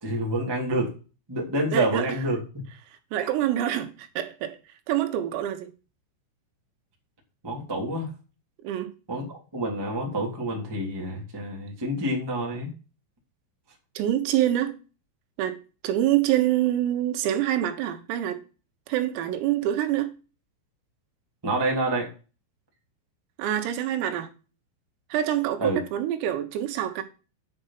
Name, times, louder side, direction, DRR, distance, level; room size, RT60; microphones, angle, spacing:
voice 1, 0.0-1.0 1.3-2.6 3.2-3.3 7.4-8.1 9.1-12.7 21.4-22.1 25.6-25.8, right 1 dB, 5° right, 1.8 m, -28 dB
voice 2, 1.7-2.1 3.1-4.6 4.9-5.7 8.6-8.9 14.0-14.7 15.4-15.6 15.8-18.4 18.9-20.2 23.4-24.3 25.1-27.0, right 12 dB, 85° right, 4.0 m, -26 dB
10.5 x 5.7 x 5.9 m
omnidirectional pair, 6.0 m